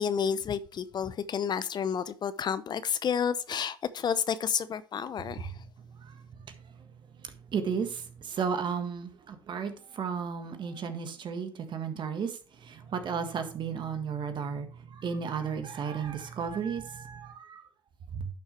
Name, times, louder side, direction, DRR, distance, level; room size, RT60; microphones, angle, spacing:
voice 1, 0.0-5.5, left 7 dB, 45° left, 0.7 m, -30 dB
voice 2, 7.5-17.6 18.1-18.3, right 6 dB, 50° right, 1.6 m, -34 dB
11.0 x 6.3 x 3.4 m
hypercardioid pair, 65°, 10 cm